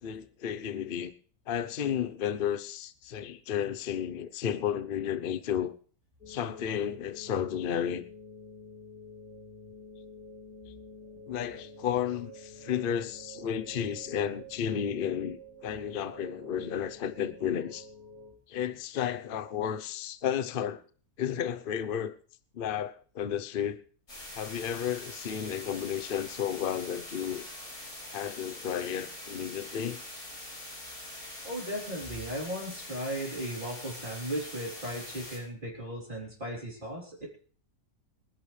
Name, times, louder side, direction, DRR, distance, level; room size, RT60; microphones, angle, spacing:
voice 1, 0.0-1.1 1.5-5.7 6.3-8.0 10.7-10.8 11.3-17.9 18.5-20.8 21.2-22.1 22.5-23.8 24.3-27.5 28.1-30.0, left 9 dB, 45° left, 0.8 m, -32 dB
sound 1, 6.2-18.3, equal, 85° left, 4.5 m, -49 dB
sound 2, 24.1-35.4, left 1 dB, 70° left, 5.7 m, -44 dB
voice 2, 31.4-37.3, equal, 30° right, 3.9 m, -36 dB
25.0 x 11.0 x 3.3 m
omnidirectional pair, 1.6 m